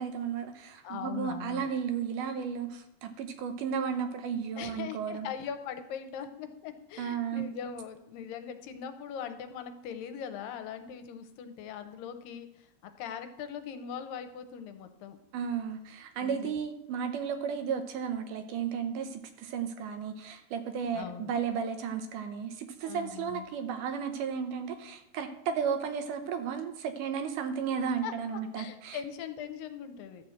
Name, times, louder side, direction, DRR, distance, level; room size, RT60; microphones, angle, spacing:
voice 1, 0.0-5.3 7.0-7.5 15.3-29.0, right 7 dB, 75° right, 7 dB, 2.1 m, -34 dB
voice 2, 0.8-1.7 4.6-12.7 13.0-15.2 16.2-16.6 20.9-21.3 22.8-23.5 28.0-30.2, left 8 dB, 85° left, 8 dB, 2.4 m, -41 dB
12.5 x 4.3 x 7.7 m, 0.80 s
omnidirectional pair, 4.1 m